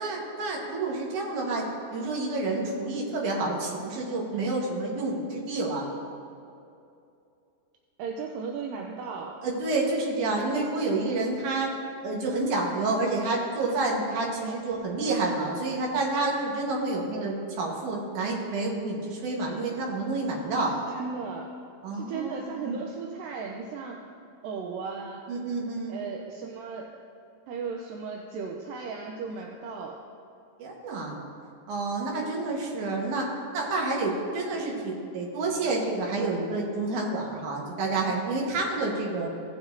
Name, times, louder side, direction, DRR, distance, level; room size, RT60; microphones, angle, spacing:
voice 1, 0.0-1.7 1.9-5.9 9.4-11.7 12.0-20.7 21.8-22.8 25.3-26.0 30.6-31.2 31.7-33.3 33.5-39.3, right 2 dB, 65° right, -2 dB, 2.6 m, -29 dB
voice 2, 8.0-9.4 14.4-14.6 15.0-15.2 17.1-17.3 20.6-21.5 21.9-24.0 24.4-25.2 25.9-26.9 27.5-30.0, right 5 dB, 80° right, 1 dB, 2.2 m, -36 dB
17.0 x 7.0 x 2.7 m, 2.6 s
omnidirectional pair, 4.3 m